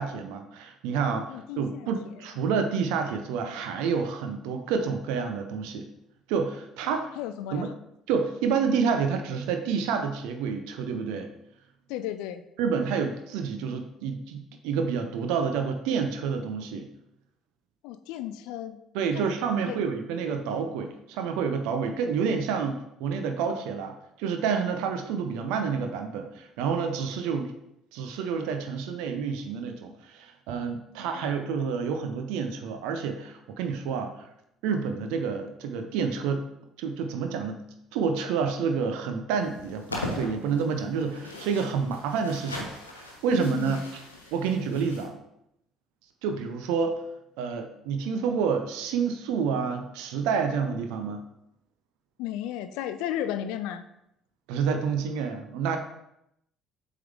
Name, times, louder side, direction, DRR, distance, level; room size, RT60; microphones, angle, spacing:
voice 1, 0.0-5.9 6.3-7.1 7.5-7.7 8.1-11.3 12.6-16.9 18.9-27.5 27.9-34.3 34.6-36.4 36.8-37.6 37.9-43.8 44.3-45.2 46.2-46.9 47.4-51.2 54.5-55.8, right 6 dB, 65° right, 6 dB, 0.6 m, -29 dB
voice 2, 1.3-1.9 7.1-7.7 11.9-12.4 17.8-18.8 19.1-19.2 19.7-19.8 31.0-31.5 43.3-43.9 52.2-53.8, left 11 dB, 65° left, 11 dB, 0.3 m, -34 dB
sound 1, 39.4-45.0, left 2 dB, 85° left, 0.8 m, -40 dB
7.6 x 3.7 x 3.4 m, 0.80 s
figure-of-eight pair, 55°, 0 cm